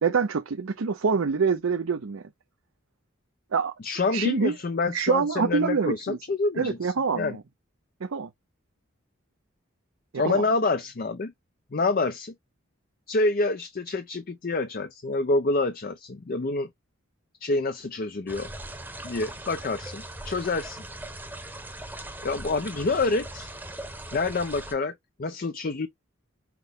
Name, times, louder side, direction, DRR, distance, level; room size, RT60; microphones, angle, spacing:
voice 1, 0.0-2.2 3.5-3.7 4.1-4.5 4.9-6.2 6.6-7.4 8.0-8.3 10.3-10.4, right 5 dB, 75° right, 0.6 m, -25 dB
voice 2, 3.8-7.4 10.1-11.3 11.7-12.3 13.1-16.7 17.4-18.5 19.0-20.8 22.2-23.5 24.1-25.9, left 3 dB, 45° left, 0.5 m, -27 dB
sound 1, 18.3-24.7, right 1 dB, 10° right, 0.9 m, -40 dB
6.0 x 2.2 x 3.4 m
head